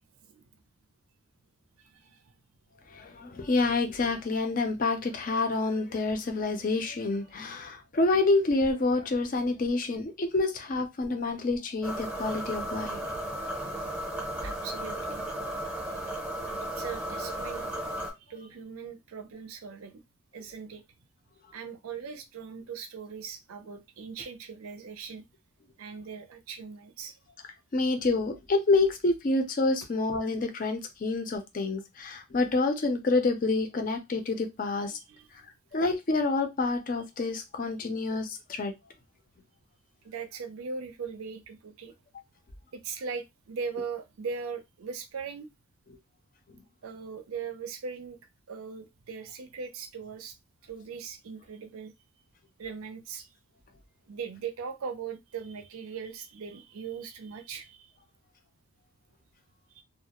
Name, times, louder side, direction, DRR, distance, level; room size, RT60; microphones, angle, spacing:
voice 1, 1.8-2.2 14.4-15.2 16.6-17.7 18.2-20.0 20.3-20.8 21.5-25.2 25.8-27.2 34.7-34.8 35.1-35.3 40.0-42.0 42.7-45.5 46.8-48.2 48.5-50.4 50.6-51.9 52.6-53.3 54.1-57.9 59.7-59.8, right 5 dB, 80° right, 0.5 m, -39 dB
voice 2, 2.9-13.0 27.7-35.0 35.7-38.7, left 3 dB, 40° left, 0.4 m, -28 dB
sound 1, 11.8-18.1, right 1 dB, 5° right, 0.6 m, -35 dB
2.3 x 2.0 x 2.9 m
head